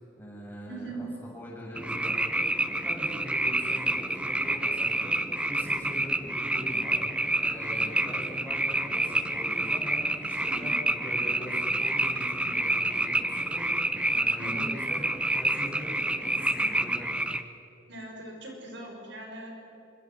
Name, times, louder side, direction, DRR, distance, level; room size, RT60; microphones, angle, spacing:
voice 1, 0.2-2.4 2.8-5.1 5.5-7.0 7.4-15.0 15.3-17.1, equal, 10° left, -5 dB, 7.3 m, -42 dB
voice 2, 0.7-1.1 10.4-10.7 14.4-14.7 17.9-19.5, right 2 dB, 65° right, 1 dB, 5.7 m, -40 dB
sound 1, 1.8-17.4, right 1 dB, 5° right, 0.7 m, -28 dB
27.0 x 25.0 x 6.3 m, 2.9 s
head